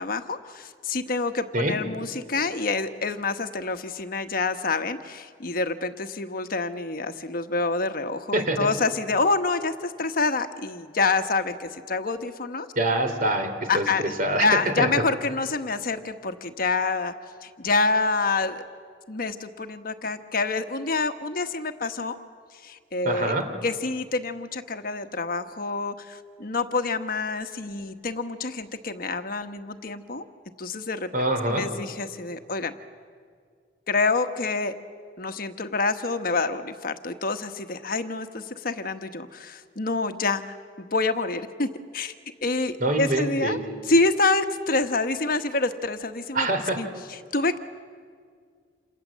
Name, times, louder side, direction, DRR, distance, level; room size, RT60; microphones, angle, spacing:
voice 1, 0.0-12.7 13.7-14.1 14.4-17.1 17.4-18.6 19.1-22.2 22.6-23.4 23.6-30.2 30.6-31.1 31.5-32.7 33.9-34.7 35.2-42.1 42.4-43.6 43.9-46.5 46.8-47.6, left 3 dB, 55° left, 8 dB, 1.2 m, -27 dB
voice 2, 12.8-13.9 14.2-14.5 14.8-14.9 23.0-23.4 31.1-31.6 42.8-43.6 46.3-46.8, right 1 dB, 50° right, 6 dB, 3.5 m, -24 dB
28.5 x 28.0 x 7.5 m, 2.1 s
head